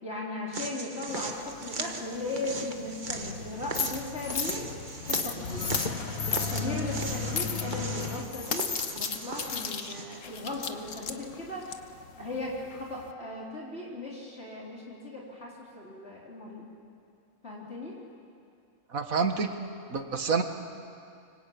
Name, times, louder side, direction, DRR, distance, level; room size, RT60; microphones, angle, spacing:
voice 1, 0.0-4.7 5.1-5.7 6.3-11.7 12.2-16.6 17.4-18.0, left 2 dB, 50° left, -4 dB, 4.0 m, -37 dB
sound 1, 0.5-10.2, right 3 dB, 35° right, 1.4 m, -39 dB
sound 2, 1.1-13.1, left 6 dB, 70° left, 1.5 m, -36 dB
sound 3, 3.1-8.2, left 5 dB, 85° left, 2.0 m, -36 dB
voice 2, 18.9-19.5 19.9-20.4, right 5 dB, 80° right, 6 dB, 2.1 m, -27 dB
25.0 x 24.5 x 8.6 m, 2.4 s
omnidirectional pair, 1.4 m